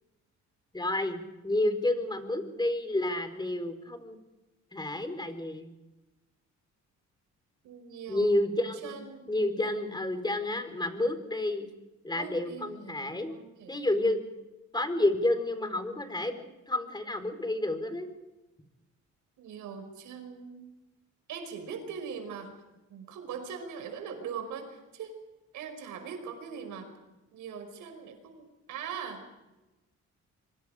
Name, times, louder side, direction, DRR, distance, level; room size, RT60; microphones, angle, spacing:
voice 1, 0.7-4.2 4.7-5.7 8.1-9.0 9.3-11.7 12.0-13.4 13.7-14.2 14.7-18.1, left 1 dB, 15° left, 8 dB, 4.2 m, -30 dB
voice 2, 7.6-8.4 8.8-9.7 12.1-13.8 19.4-20.7 21.3-22.5 22.9-25.1 25.5-26.9 27.3-29.3, right 6 dB, 85° right, 6 dB, 5.5 m, -41 dB
26.0 x 24.0 x 5.1 m, 1.0 s
cardioid pair, 90°, 30 cm